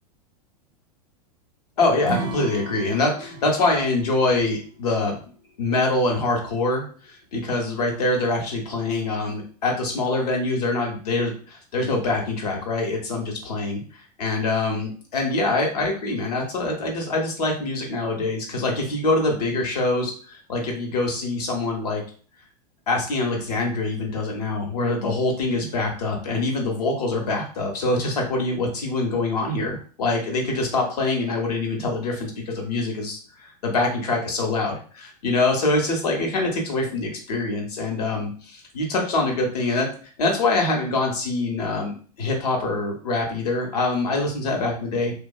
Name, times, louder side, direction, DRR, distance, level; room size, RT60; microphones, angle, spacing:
voice 1, 1.8-5.2 5.6-22.0 22.9-45.1, left 2 dB, 75° left, 1 dB, 0.9 m, -24 dB
Acoustic guitar / Strum, 2.0-5.3, right 3 dB, 20° right, 0.5 m, -35 dB
2.8 x 2.3 x 2.3 m, 0.41 s
hypercardioid pair, 100°, 20 cm